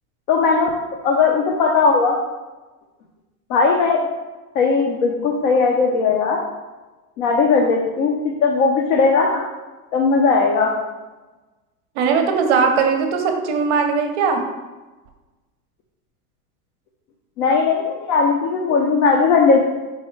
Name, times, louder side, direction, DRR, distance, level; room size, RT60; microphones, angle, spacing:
voice 1, 0.3-0.7 1.0-2.2 3.5-4.0 4.6-6.4 7.2-8.1 8.4-9.4 9.9-10.7 17.4-19.6, left 4 dB, 55° left, 0 dB, 0.6 m, -17 dB
voice 2, 12.0-14.4, right 5 dB, 50° right, 4 dB, 0.5 m, -19 dB
4.6 x 2.1 x 4.4 m, 1.2 s
supercardioid pair, 175°, 46 cm